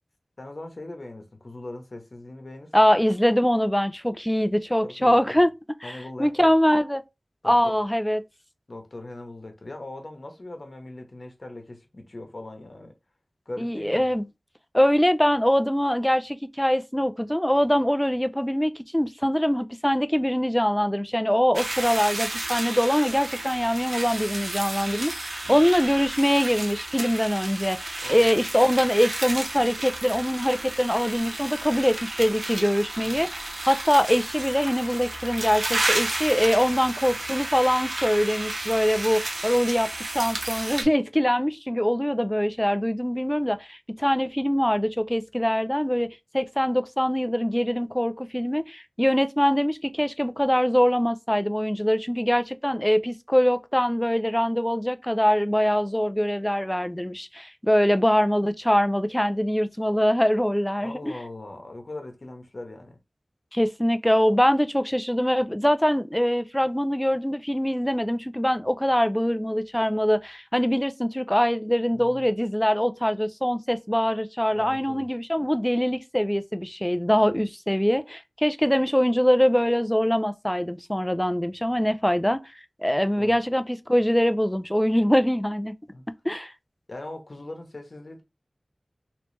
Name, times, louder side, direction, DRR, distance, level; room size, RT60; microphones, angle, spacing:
voice 1, 0.4-2.7 4.8-5.4 5.8-6.5 7.4-7.7 8.7-12.9 13.5-14.1 25.4-25.6 28.0-28.3 33.0-33.3 36.6-37.2 60.8-63.0 71.9-72.3 74.5-75.1 83.2-83.4 85.9-86.0 86.9-88.2, left 2 dB, 65° left, 1.0 m, -40 dB
voice 2, 2.7-5.5 5.8-7.0 7.4-8.2 13.6-14.2 14.7-46.1 46.3-61.1 63.5-82.4 82.8-85.7 86.2-86.5, equal, 10° left, 0.4 m, -23 dB
sound 1, 21.5-40.8, right 2 dB, 80° right, 0.9 m, -32 dB
3.0 x 3.0 x 3.2 m
wide cardioid pair, 40°, 0 cm